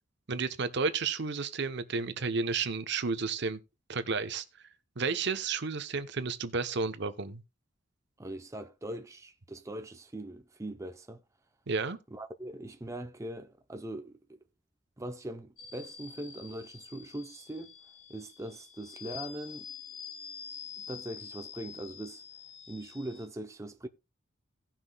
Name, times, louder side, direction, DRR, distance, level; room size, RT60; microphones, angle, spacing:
voice 1, 0.3-3.6 3.9-4.4 5.0-7.4 11.7-12.0, right 4 dB, 65° right, 0.9 m, -32 dB
voice 2, 8.2-11.2 12.1-14.4 15.0-17.7 18.1-19.7 20.8-22.2 22.7-23.9, right 1 dB, 15° right, 0.6 m, -41 dB
sound 1, 15.6-23.3, left 7 dB, 90° left, 3.8 m, -47 dB
17.5 x 5.9 x 2.3 m
head